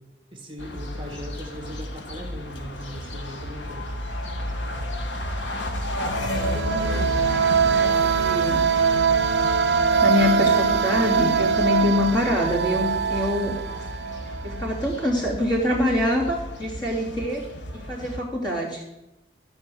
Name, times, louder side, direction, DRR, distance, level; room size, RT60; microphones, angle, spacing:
voice 1, 0.3-3.9, equal, 25° right, 3 dB, 1.8 m, -39 dB
sound 1, 0.6-18.2, left 1 dB, 80° left, 1.4 m, -32 dB
voice 2, 5.9-8.7 10.0-13.6 14.4-17.4 17.7-18.8, left 1 dB, 25° left, -3 dB, 3.0 m, -26 dB
sound 2, 6.2-14.8, right 6 dB, 65° right, 0.8 m, -22 dB
14.0 x 5.5 x 7.8 m, 0.97 s
head